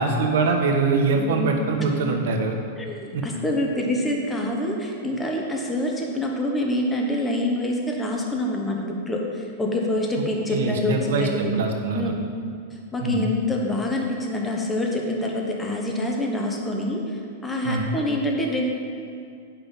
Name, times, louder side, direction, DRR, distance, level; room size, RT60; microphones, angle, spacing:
voice 1, 0.0-2.6 3.1-3.2 10.5-12.1 13.0-13.3 17.6-17.9, right 4 dB, 75° right, 2 dB, 1.3 m, -23 dB
voice 2, 1.1-1.6 2.2-2.3 2.8-11.4 11.9-12.2 12.9-18.7, left 1 dB, 10° left, 0 dB, 1.0 m, -26 dB
8.9 x 5.9 x 5.4 m, 2.3 s
supercardioid pair, 155°, 0 cm